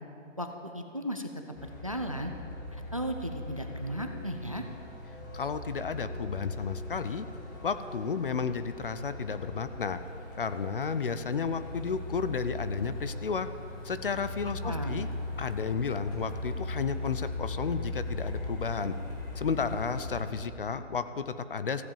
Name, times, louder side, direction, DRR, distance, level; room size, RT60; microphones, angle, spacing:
voice 1, 0.4-1.3 1.6-2.3 2.7-4.6 14.6-15.1, equal, 30° right, 5 dB, 0.4 m, -35 dB
Truck, 1.6-20.2, left 2 dB, 15° left, 0.9 m, -39 dB
voice 2, 5.3-7.3 7.6-10.0 10.4-13.5 13.8-15.1 15.4-19.0 19.4-21.8, left 5 dB, 45° left, 12 dB, 0.5 m, -32 dB
14.5 x 7.8 x 7.0 m, 2.7 s
hypercardioid pair, 170°, 38 cm